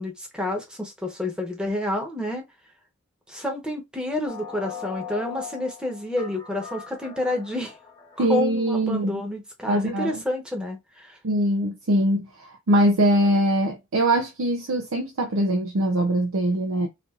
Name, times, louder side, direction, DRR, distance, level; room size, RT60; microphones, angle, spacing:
voice 1, 0.0-2.4 3.3-7.7 8.2-11.2, left 1 dB, 5° right, 1.0 m, -29 dB
sound 1, 4.3-8.8, left 7 dB, 20° left, 0.9 m, -40 dB
voice 2, 8.2-9.2 9.7-10.2 11.2-16.9, right 1 dB, 80° right, 0.6 m, -22 dB
4.3 x 2.6 x 2.4 m
head